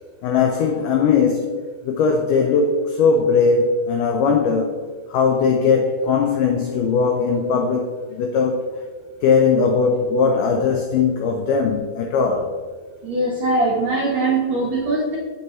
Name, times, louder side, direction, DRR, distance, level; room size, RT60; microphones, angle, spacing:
voice 1, 0.2-4.8 5.1-8.7 9.2-12.5, left 5 dB, 85° left, 1.8 m, -19 dB
voice 2, 13.0-15.2, right 2 dB, 75° right, 1.5 m, -21 dB
8.0 x 5.9 x 3.1 m
omnidirectional pair, 4.4 m